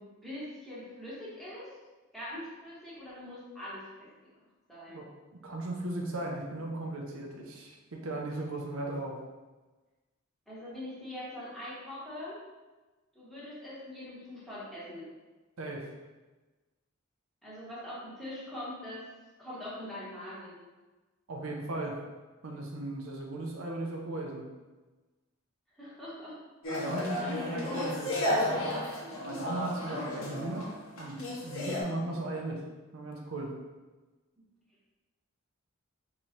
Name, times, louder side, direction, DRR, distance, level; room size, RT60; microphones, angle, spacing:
voice 1, 0.0-1.7 2.1-4.1 4.7-5.0 10.5-12.4 13.1-15.1 17.4-19.1 19.4-20.5 25.8-26.4 27.2-27.7 31.8-32.1, left 1 dB, ahead, -10 dB, 1.2 m, -43 dB
voice 2, 5.3-9.2 15.6-15.9 21.3-22.0 22.4-24.4 26.7-28.6 29.2-32.6 32.9-33.5, right 2 dB, 80° right, 0 dB, 0.6 m, -37 dB
sound 1, 26.6-31.8, left 1 dB, 70° left, 1.2 m, -33 dB
4.6 x 3.1 x 2.8 m, 1.2 s
head